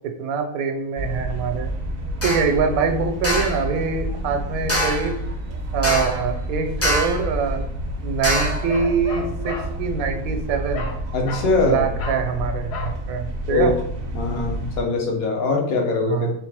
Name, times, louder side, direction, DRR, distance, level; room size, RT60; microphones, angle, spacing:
voice 1, 0.0-1.7 2.2-5.2 5.7-7.7 8.0-10.9 11.7-13.7 16.1-16.3, right 5 dB, 80° right, 6 dB, 1.0 m, -24 dB
sound 1, 1.0-14.8, equal, 60° right, 0.6 m, -29 dB
sound 2, 2.2-2.5 3.2-3.6 4.7-5.1 5.8-6.3 6.8-7.3 8.2-8.7, equal, 25° left, 0.3 m, -24 dB
Bark, 8.3-9.7 10.7-11.0 11.2-11.5 12.0-12.3 12.7-13.0, left 4 dB, 65° left, 0.7 m, -33 dB
voice 2, 11.1-11.9 13.5-13.7 14.1-16.3, left 3 dB, 80° left, 1 dB, 1.3 m, -22 dB
3.7 x 3.1 x 3.3 m, 0.73 s
omnidirectional pair, 1.5 m